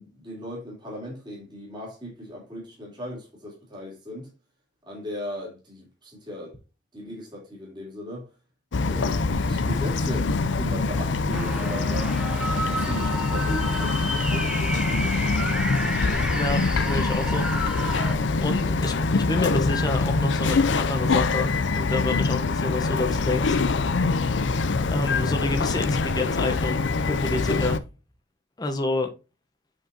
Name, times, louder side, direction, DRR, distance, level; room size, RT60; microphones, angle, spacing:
voice 1, 0.0-4.3 4.8-6.5 6.9-8.3 8.8-12.1 12.4-15.2, equal, 25° right, 3.1 m, -37 dB
Bird vocalization bird call bird song, 8.7-27.8, left 3 dB, 80° left, 0.6 m, -24 dB
sound 1, 11.3-18.2, equal, 5° right, 1.0 m, -31 dB
voice 2, 16.3-17.5 18.4-24.0 24.9-27.8 28.6-29.1, left 2 dB, 20° left, 1.0 m, -29 dB
8.3 x 4.6 x 2.7 m
head